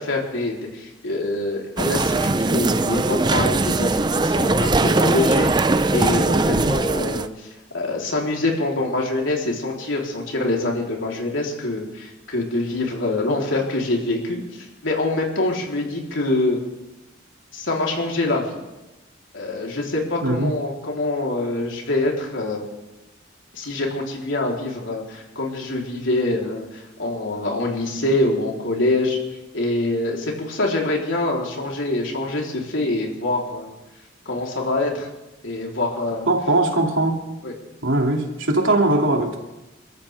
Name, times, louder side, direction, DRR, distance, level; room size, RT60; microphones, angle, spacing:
voice 1, 0.0-16.6 17.5-18.6 19.3-22.6 23.5-29.2 29.5-33.7 34.3-35.1 35.4-36.3 37.4-37.5, left 2 dB, 75° left, -1 dB, 3.7 m, -25 dB
sound 1, 1.8-7.3, right 2 dB, 20° right, 0.5 m, -20 dB
voice 2, 20.2-20.5 36.3-37.2 37.8-39.4, right 2 dB, 85° right, 1 dB, 2.6 m, -20 dB
29.0 x 13.5 x 3.5 m, 1.0 s
head